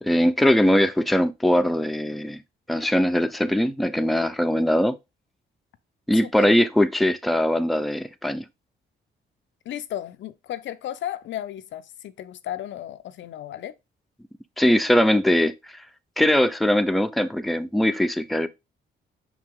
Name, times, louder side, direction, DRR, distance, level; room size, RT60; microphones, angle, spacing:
voice 1, 0.0-2.4 2.7-5.0 6.1-8.4 14.6-15.8 16.2-18.5, left 1 dB, ahead, 0.6 m, -21 dB
voice 2, 9.7-13.7, left 11 dB, 70° left, 0.6 m, -34 dB
5.8 x 4.8 x 3.7 m
cardioid pair, 90°, 20 cm